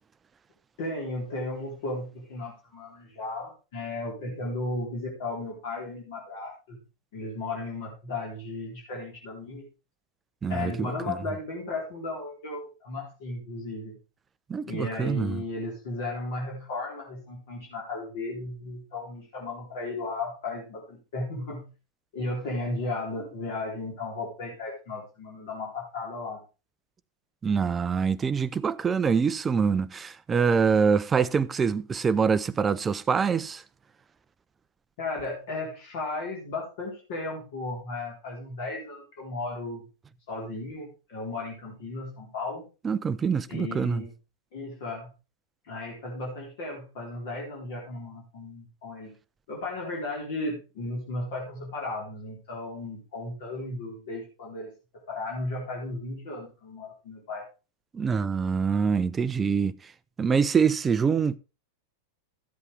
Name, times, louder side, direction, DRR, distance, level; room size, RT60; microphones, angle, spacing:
voice 1, 0.8-6.8 7.1-9.7 10.5-14.0 14.6-21.7 22.1-26.4 35.0-39.8 40.3-42.7 43.5-44.1 44.5-45.1 45.6-49.1 49.5-54.7 55.1-57.5, left 2 dB, 50° left, 3.9 m, -35 dB
voice 2, 10.4-10.9 14.5-15.4 27.4-33.6 42.8-44.0 57.9-59.7 60.2-61.4, right 6 dB, 20° right, 0.5 m, -25 dB
13.5 x 8.2 x 3.5 m
figure-of-eight pair, 90°, 0 cm